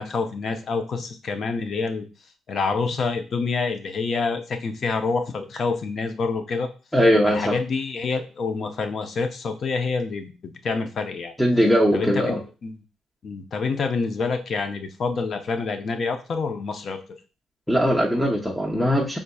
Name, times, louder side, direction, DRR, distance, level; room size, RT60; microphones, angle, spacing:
voice 1, 0.0-2.0 2.5-6.7 7.2-11.3 11.9-12.4 12.6-12.8 13.2-17.0, left 4 dB, 55° left, 6 dB, 0.7 m, -27 dB
voice 2, 6.9-7.5 11.4-12.4 17.7-19.2, equal, ahead, -1 dB, 0.8 m, -20 dB
5.2 x 3.7 x 2.3 m, 0.33 s
supercardioid pair, 65°, 0 cm